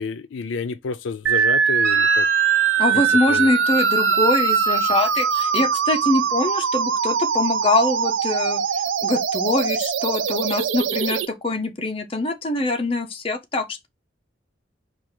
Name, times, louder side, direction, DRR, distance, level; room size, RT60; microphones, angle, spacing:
voice 1, 0.0-2.3 3.3-3.5, left 5 dB, 90° left, 0.4 m, -29 dB
sound 1, 1.3-11.3, right 7 dB, 85° right, 0.4 m, -22 dB
Wind instrument woodwind instrument, 1.8-5.1, equal, 15° right, 1.7 m, -27 dB
voice 2, 2.8-8.6 9.0-13.9, left 2 dB, 30° left, 0.6 m, -23 dB
4.6 x 2.4 x 4.3 m
head